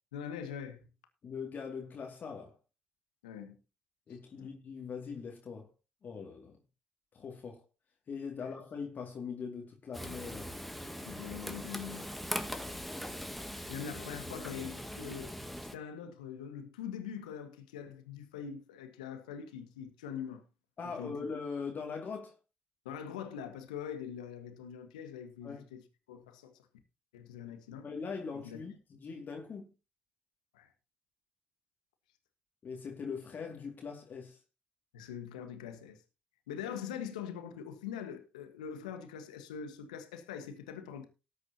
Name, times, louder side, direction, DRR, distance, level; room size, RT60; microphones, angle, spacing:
voice 1, 0.1-0.8 3.2-3.6 4.4-4.5 8.4-8.5 11.0-12.1 12.5-12.6 13.7-15.3 15.7-20.4 20.8-21.2 22.8-25.8 26.1-26.6 27.1-27.9 28.3-28.6 30.5-30.7 34.9-36.0 36.5-41.1, left 8 dB, 85° left, 1.4 m, -43 dB
voice 2, 1.2-2.5 4.1-5.7 6.0-6.6 7.1-7.6 8.1-10.5 20.8-22.4 25.4-25.7 27.8-29.7 32.6-34.4, left 5 dB, 50° left, 2.3 m, -41 dB
Frying (food), 9.9-15.8, equal, ahead, 1.6 m, -41 dB
19.0 x 8.1 x 2.8 m
hypercardioid pair, 45°, 4 cm